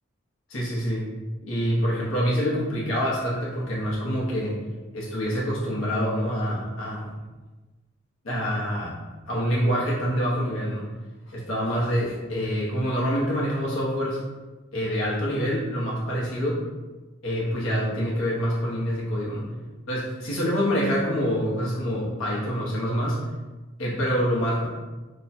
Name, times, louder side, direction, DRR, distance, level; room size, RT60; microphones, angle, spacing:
voice 1, 0.5-1.1 1.4-4.5 4.9-7.1 8.2-10.9 11.3-14.2 14.7-16.6 17.2-19.4 19.9-23.2 23.8-24.7, equal, 90° left, -5 dB, 1.1 m, -26 dB
3.0 x 2.2 x 4.1 m, 1.2 s
head